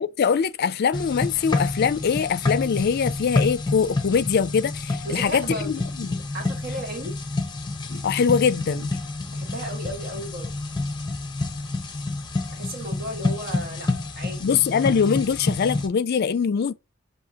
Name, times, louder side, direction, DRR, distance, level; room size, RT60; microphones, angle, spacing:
voice 1, 0.0-6.2 7.9-9.0 14.4-16.7, left 6 dB, 55° left, 0.4 m, -23 dB
sound 1, 0.9-15.9, left 2 dB, 20° left, 0.8 m, -28 dB
voice 2, 5.0-5.8 6.1-7.2 9.3-10.5 12.5-13.9 14.2-14.6, right 1 dB, 50° right, 1.3 m, -34 dB
6.3 x 2.8 x 2.7 m
head